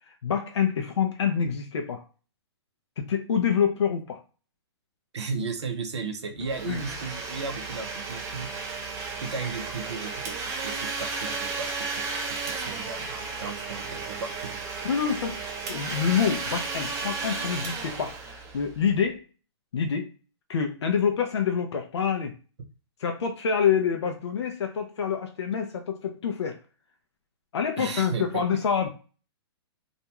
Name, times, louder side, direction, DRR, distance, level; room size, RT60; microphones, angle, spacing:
voice 1, 0.1-2.0 3.0-4.2 6.7-6.8 14.8-15.4 15.7-19.2 19.7-20.1 20.5-22.3 23.0-26.6 27.5-28.9, left 7 dB, 80° left, 4 dB, 0.6 m, -26 dB
voice 2, 5.1-8.5 9.2-14.6 27.8-28.4, right 4 dB, 80° right, 6 dB, 0.7 m, -35 dB
Domestic sounds home sounds, 6.4-19.0, right 4 dB, 20° right, 0.5 m, -34 dB
2.5 x 2.2 x 2.9 m, 0.36 s
hypercardioid pair, 130°, 14 cm